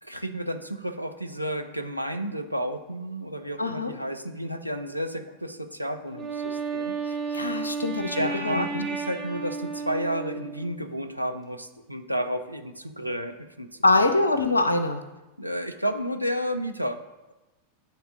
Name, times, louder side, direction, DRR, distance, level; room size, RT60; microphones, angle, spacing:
voice 1, 0.0-7.0 7.3-7.4 8.1-13.7 15.4-17.0, equal, 90° right, 6 dB, 0.4 m, -31 dB
voice 2, 3.6-3.9 7.1-8.6 13.8-15.0, left 2 dB, 80° left, 8 dB, 0.5 m, -24 dB
Wind instrument woodwind instrument, 6.1-10.8, right 5 dB, 25° right, 1.4 m, -32 dB
9.3 x 3.5 x 3.7 m, 1.0 s
figure-of-eight pair, 90°, 0 cm